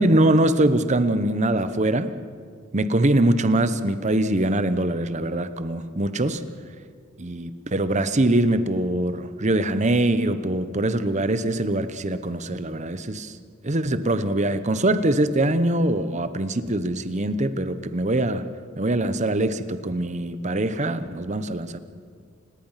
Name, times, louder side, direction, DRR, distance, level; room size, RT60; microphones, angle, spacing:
voice 1, 0.0-2.1 2.7-6.4 7.2-13.3 13.6-18.5 18.8-21.8, right 1 dB, 35° right, 12 dB, 0.9 m, -23 dB
29.0 x 18.0 x 5.8 m, 2.1 s
head